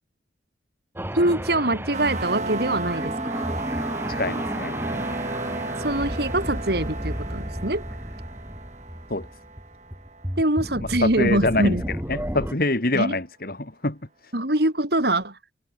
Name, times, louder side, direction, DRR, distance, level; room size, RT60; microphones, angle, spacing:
sound 1, 1.0-12.5, equal, 10° right, 3.7 m, -33 dB
voice 1, 1.1-3.4 5.8-7.8 10.4-11.8 12.9-13.2 14.3-15.4, right 1 dB, 60° right, 4.0 m, -24 dB
sound 2, 1.9-10.5, right 2 dB, 40° right, 5.8 m, -34 dB
voice 2, 4.1-4.8 9.1-9.3 11.0-14.0, left 2 dB, 55° left, 2.4 m, -25 dB
head